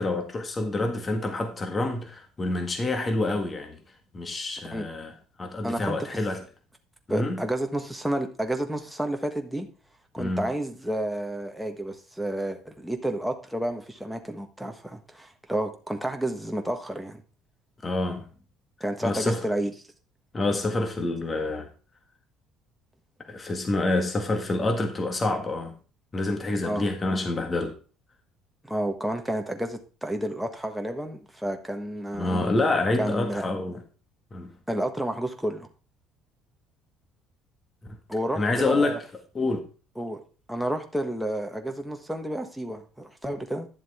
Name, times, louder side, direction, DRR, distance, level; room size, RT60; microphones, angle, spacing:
voice 1, 0.0-3.8 4.1-5.1 5.4-6.4 7.1-7.4 10.2-10.5 17.8-18.3 19.0-19.4 20.3-21.7 23.3-25.7 26.1-27.7 32.2-33.8 34.3-34.5 38.4-39.0 39.3-39.6, left 2 dB, 20° left, 1.7 m, -27 dB
voice 2, 5.6-6.0 7.1-9.7 10.1-17.2 18.8-19.7 26.6-26.9 28.6-32.4 33.0-33.4 34.7-35.7 38.1-39.0 40.0-40.2 40.5-43.7, right 1 dB, ahead, 1.4 m, -30 dB
11.0 x 7.3 x 3.6 m
cardioid pair, 140°, 0 cm